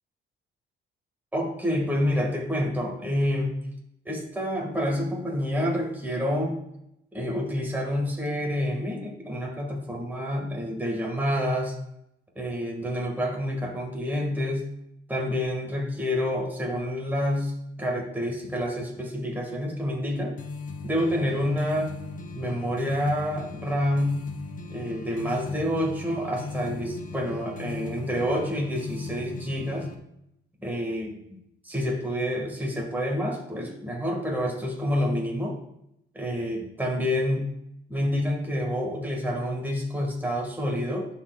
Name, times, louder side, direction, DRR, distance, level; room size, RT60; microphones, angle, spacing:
voice 1, 1.3-3.5 4.1-6.6 7.1-11.7 12.4-14.7 15.1-17.5 17.8-20.3 20.8-21.9 22.3-24.2 24.7-29.9 30.6-31.2 31.6-35.5 36.1-37.5 37.9-41.1, equal, 10° right, -1 dB, 1.8 m, -28 dB
sound 1, 20.4-30.0, left 4 dB, 40° left, 1.0 m, -38 dB
11.5 x 4.6 x 2.4 m, 0.79 s
cardioid pair, 90°, 20 cm